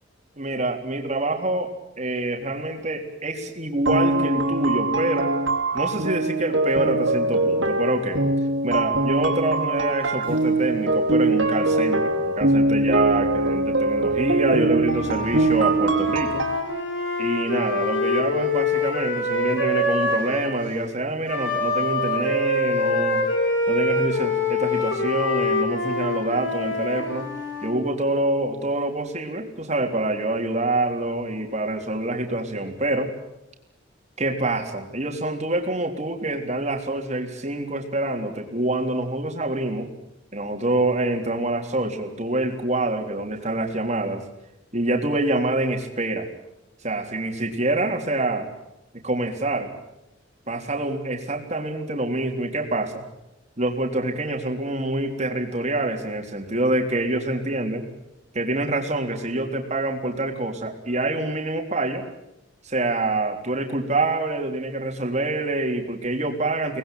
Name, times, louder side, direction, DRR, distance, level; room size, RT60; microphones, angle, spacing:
voice 1, 0.4-1.7 2.0-5.3 5.7-8.2 8.6-16.4 17.2-23.2 23.7-27.3 27.6-33.1 34.2-39.9 40.3-44.2 44.7-46.3 46.8-48.5 49.0-49.7 50.5-53.1 53.6-57.8 58.3-62.0 62.6-66.8, right 2 dB, 35° right, 3 dB, 3.6 m, -26 dB
sound 1, 3.9-16.6, right 2 dB, 75° right, 3.6 m, -22 dB
Wind instrument woodwind instrument, 14.8-20.6 21.3-27.7, left 2 dB, 70° left, 7.6 m, -25 dB
24.5 x 19.5 x 9.2 m, 0.90 s
head